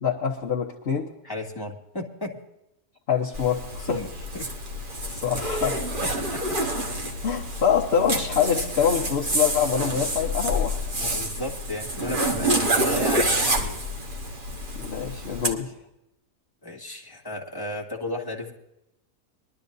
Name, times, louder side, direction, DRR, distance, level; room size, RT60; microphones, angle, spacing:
voice 1, 0.0-1.1 3.1-4.0 5.1-5.8 7.0-10.8 11.1-11.2 14.7-15.7, left 7 dB, 45° left, -3 dB, 1.3 m, -25 dB
voice 2, 1.2-2.4 3.8-4.1 4.3-4.5 6.0-6.6 11.0-13.8 16.6-18.5, left 1 dB, 15° left, 0 dB, 1.9 m, -33 dB
Zipper (clothing), 3.3-15.5, right 1 dB, 35° right, 1.5 m, -28 dB
22.0 x 12.0 x 2.7 m, 0.84 s
omnidirectional pair, 1.6 m